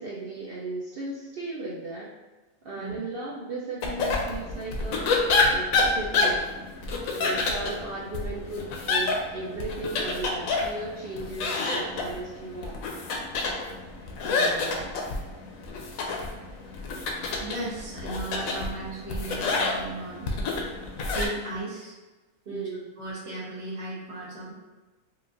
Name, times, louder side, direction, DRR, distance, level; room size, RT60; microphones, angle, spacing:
voice 1, 0.0-2.1 2.6-6.4 7.2-12.9 22.5-22.9, right 2 dB, 75° right, -5 dB, 0.5 m, -36 dB
sound 1, 3.8-21.3, left 3 dB, 70° left, 1.0 m, -28 dB
voice 2, 14.2-14.9 17.1-20.3 21.1-22.0 22.5-22.7 23.0-24.5, right 1 dB, 55° right, -6 dB, 1.4 m, -36 dB
4.6 x 2.4 x 2.5 m, 1.2 s
omnidirectional pair, 1.6 m